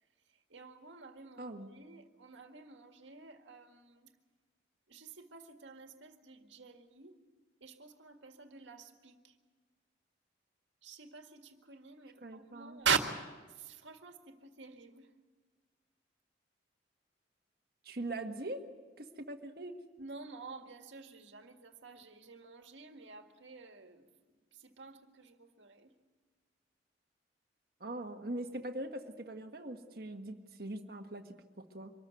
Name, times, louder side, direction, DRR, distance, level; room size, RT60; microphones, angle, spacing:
voice 1, 0.3-4.1 4.9-7.2 7.6-9.4 10.8-13.1 13.5-15.1 20.0-25.9, right 6 dB, 90° right, 6 dB, 1.8 m, -43 dB
voice 2, 1.4-1.7 12.2-12.8 17.8-18.6 19.0-19.8 27.8-31.9, right 1 dB, 55° right, 5 dB, 1.6 m, -42 dB
24.5 x 14.0 x 9.4 m, 1.4 s
head